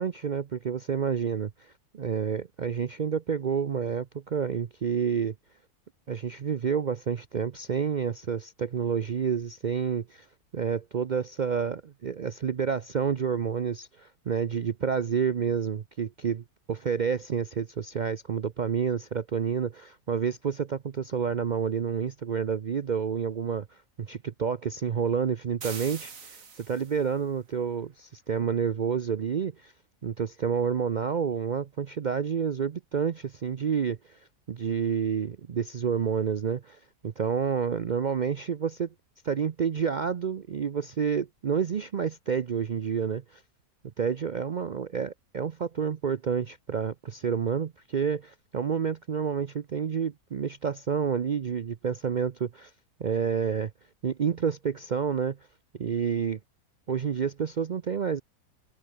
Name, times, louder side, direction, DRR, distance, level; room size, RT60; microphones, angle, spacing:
voice 1, 0.0-5.3 6.1-10.3 10.5-29.7 30.0-34.2 34.5-38.9 39.2-43.4 44.0-52.7 53.0-53.7 54.0-55.4 55.8-56.4 56.9-58.2, right 7 dB, 80° right, 0.4 m, -29 dB
sound 1, 25.6-27.2, right 5 dB, 55° right, 2.2 m, -42 dB
omnidirectional pair, 1.7 m